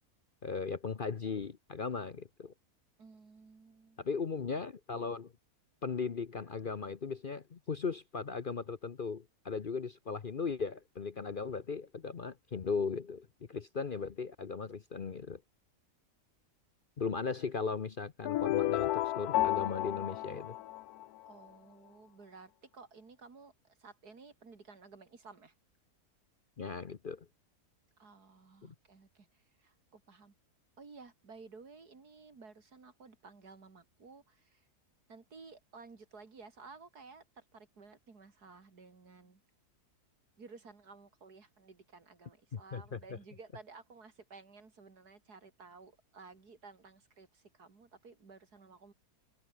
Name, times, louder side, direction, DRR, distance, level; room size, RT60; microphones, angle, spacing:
voice 1, 0.4-2.5 4.0-5.3 5.8-15.4 17.0-20.6 26.6-27.3 28.6-28.7 42.5-43.0, left 5 dB, 40° left, 0.9 m, -37 dB
voice 2, 3.0-4.1 21.3-25.5 28.0-30.3 30.8-34.7 35.1-39.4 40.4-48.9, right 4 dB, 80° right, 3.5 m, -55 dB
sound 1, 18.2-21.3, left 14 dB, 80° left, 1.1 m, -32 dB
omnidirectional pair, 1.6 m